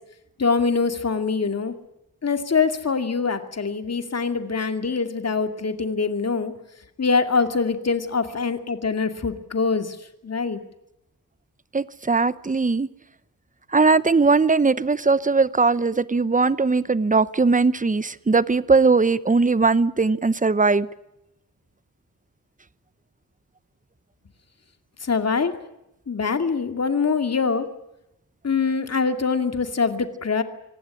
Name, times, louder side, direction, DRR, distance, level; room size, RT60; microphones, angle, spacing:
voice 1, 0.4-1.7 2.2-6.5 7.0-10.0 10.2-10.6 25.0-25.5 26.1-27.7 28.4-30.4, left 5 dB, 50° left, 2.4 m, -24 dB
voice 2, 11.7-12.9 13.7-20.9, right 4 dB, 25° right, 0.9 m, -19 dB
25.0 x 18.5 x 9.9 m
wide cardioid pair, 125°, 33 cm